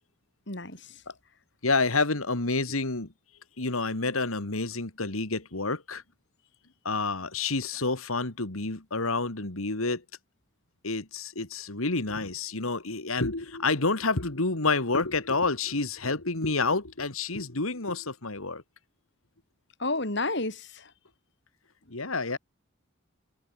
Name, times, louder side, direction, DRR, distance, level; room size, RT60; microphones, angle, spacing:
voice 1, 0.5-1.0 19.8-20.9, left 2 dB, 55° left, 4.6 m, -31 dB
voice 2, 1.6-3.1 3.6-6.0 6.8-10.0 10.8-18.6 21.9-22.4, left 3 dB, 85° left, 2.5 m, -29 dB
head